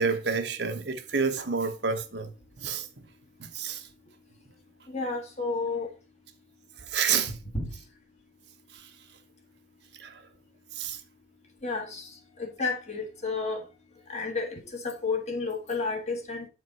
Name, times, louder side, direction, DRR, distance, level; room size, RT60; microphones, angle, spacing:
voice 1, 0.0-2.3 2.6-2.9 3.5-3.8 6.8-7.4 10.0-10.2 10.8-11.0, right 5 dB, 65° right, 1.0 m, -28 dB
voice 2, 4.9-5.9 7.3-7.7 11.6-12.1 12.4-13.6 14.1-16.5, left 3 dB, 35° left, 1.6 m, -31 dB
8.8 x 4.6 x 4.1 m
head